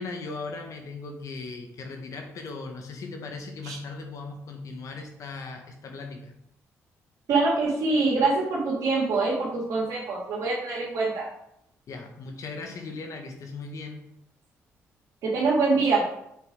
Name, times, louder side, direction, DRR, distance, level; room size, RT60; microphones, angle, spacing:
voice 1, 0.0-6.3 11.9-14.1, left 3 dB, 65° left, 4 dB, 1.3 m, -38 dB
voice 2, 7.3-11.3 15.2-16.0, right 3 dB, 75° right, -7 dB, 2.0 m, -24 dB
6.9 x 4.8 x 3.7 m, 0.78 s
supercardioid pair, 65°, 6 cm